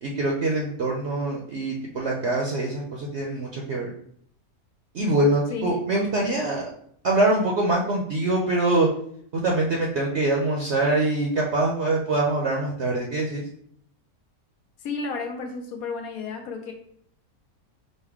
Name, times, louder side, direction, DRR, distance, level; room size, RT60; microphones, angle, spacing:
voice 1, 0.0-3.9 4.9-6.7 7.0-8.9 9.3-13.4, right 2 dB, 60° right, -1 dB, 0.8 m, -24 dB
voice 2, 14.8-16.7, left 4 dB, 75° left, 3 dB, 1.1 m, -32 dB
5.3 x 2.2 x 3.4 m, 0.65 s
omnidirectional pair, 1.5 m